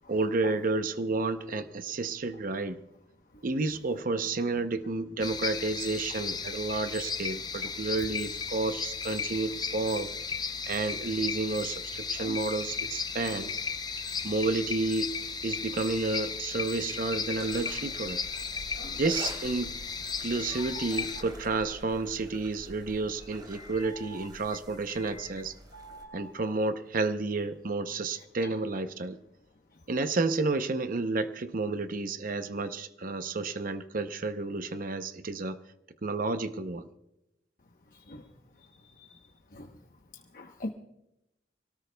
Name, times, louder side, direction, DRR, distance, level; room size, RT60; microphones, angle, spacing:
voice 1, 0.1-2.8 3.4-10.1 10.7-13.5 14.2-15.1 15.4-18.2 19.0-19.7 20.2-25.5 26.1-29.2 29.9-35.6 36.0-36.9, right 3 dB, 50° right, 9 dB, 0.7 m, -31 dB
sound 1, 5.2-21.2, left 5 dB, 25° left, 0.6 m, -35 dB
sound 2, 17.4-26.0, right 1 dB, 25° right, 3.2 m, -48 dB
voice 2, 20.5-20.9 23.5-24.2 24.9-25.3 25.7-26.3 38.1-38.2 39.5-39.7 40.3-40.7, left 1 dB, 50° left, 5 dB, 0.9 m, -43 dB
25.0 x 18.5 x 2.3 m, 0.85 s
head